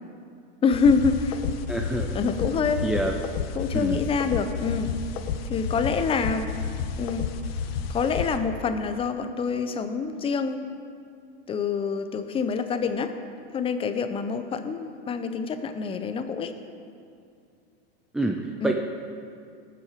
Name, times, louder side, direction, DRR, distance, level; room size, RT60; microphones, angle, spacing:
voice 1, 0.6-1.4 2.1-2.9 3.5-4.9 5.4-6.5 7.0-7.2 7.9-10.6 11.5-13.1 13.5-16.5 18.6-18.7, left 5 dB, 20° left, 9 dB, 0.7 m, -26 dB
sound 1, 0.7-8.4, left 6 dB, 80° left, 1.1 m, -31 dB
voice 2, 1.7-2.1 2.8-3.1 3.7-4.0 18.1-18.7, right 2 dB, ahead, 3 dB, 0.3 m, -27 dB
18.5 x 7.6 x 5.1 m, 2.3 s
supercardioid pair, 140°, 30 cm